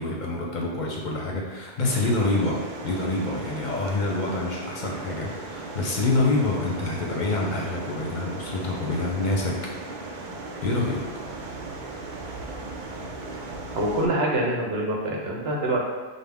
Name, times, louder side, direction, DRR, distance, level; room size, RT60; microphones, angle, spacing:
voice 1, 0.0-2.6 2.8-9.6 10.6-11.0, left 2 dB, 55° left, -2 dB, 0.7 m, -26 dB
sound 1, 1.8-14.1, right 2 dB, 60° right, 0.6 m, -37 dB
voice 2, 13.7-15.8, right 1 dB, 75° right, -2 dB, 1.0 m, -25 dB
5.2 x 2.1 x 3.4 m, 1.4 s
omnidirectional pair, 1.1 m